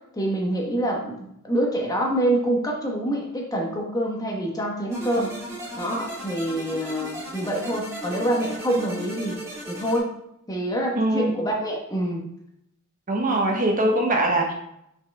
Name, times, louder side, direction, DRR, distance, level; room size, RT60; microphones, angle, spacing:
voice 1, 0.1-5.3 5.8-9.4 9.7-10.1 10.5-12.2, right 1 dB, 15° left, -1 dB, 1.3 m, -26 dB
sound 1, 4.9-10.0, right 1 dB, 15° right, 2.1 m, -36 dB
voice 2, 10.9-11.3 13.1-14.5, right 1 dB, 40° right, 2 dB, 1.1 m, -22 dB
6.0 x 5.7 x 3.4 m, 0.77 s
head